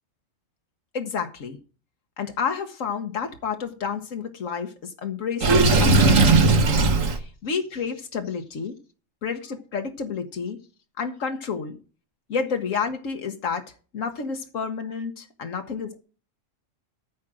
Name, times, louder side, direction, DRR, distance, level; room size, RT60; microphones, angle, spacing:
voice 1, 0.9-1.6 2.2-6.6 7.0-8.8 9.2-10.6 11.0-11.8 12.3-16.0, left 6 dB, 85° left, 1.5 m, -30 dB
Water / Sink (filling or washing), 5.4-7.2, right 3 dB, 85° right, 1.6 m, -17 dB
13.5 x 4.9 x 7.5 m
omnidirectional pair, 1.3 m